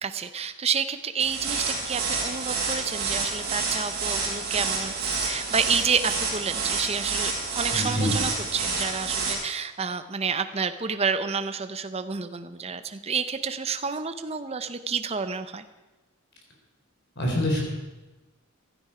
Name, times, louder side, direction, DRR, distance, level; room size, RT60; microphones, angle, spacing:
voice 1, 0.0-15.6, right 6 dB, 30° right, 10 dB, 0.6 m, -29 dB
sound 1, 1.2-9.3, right 4 dB, 45° right, 5.4 m, -29 dB
voice 2, 7.7-8.1 17.2-17.6, left 1 dB, 50° left, 0 dB, 3.9 m, -25 dB
15.5 x 12.5 x 4.9 m, 1.1 s
head